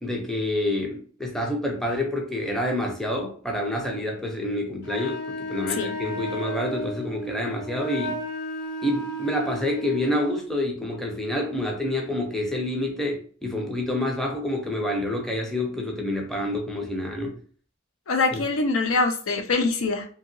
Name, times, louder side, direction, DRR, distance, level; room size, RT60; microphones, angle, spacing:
voice 1, 0.0-8.2 8.8-17.4 18.3-18.4, left 1 dB, ahead, 0.4 m, -28 dB
Wind instrument woodwind instrument, 4.8-10.4, equal, 50° left, 0.8 m, -33 dB
voice 2, 18.1-20.1, left 3 dB, 85° left, 0.5 m, -24 dB
2.8 x 2.8 x 2.6 m
head